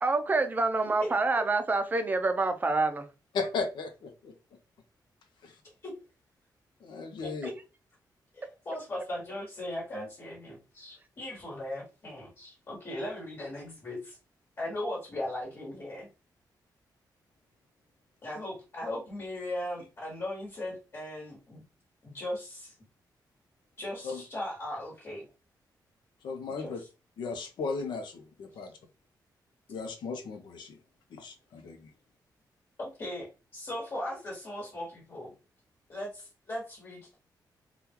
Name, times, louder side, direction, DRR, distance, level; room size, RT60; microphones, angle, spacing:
voice 1, 0.0-3.1, right 3 dB, 25° right, 0.4 m, -27 dB
voice 2, 3.3-4.3 5.4-5.5 6.8-7.5 24.0-24.2 26.2-26.8 27.2-28.7 29.7-30.8 31.1-31.9, left 4 dB, 80° left, 0.6 m, -36 dB
voice 3, 7.2-7.5 8.3-14.2 14.6-16.1 18.2-21.6 22.0-22.7 23.8-25.2 26.6-26.9 32.8-35.3 35.9-37.2, left 1 dB, 35° left, 1.5 m, -38 dB
3.6 x 2.3 x 2.9 m
wide cardioid pair, 165°, 8 cm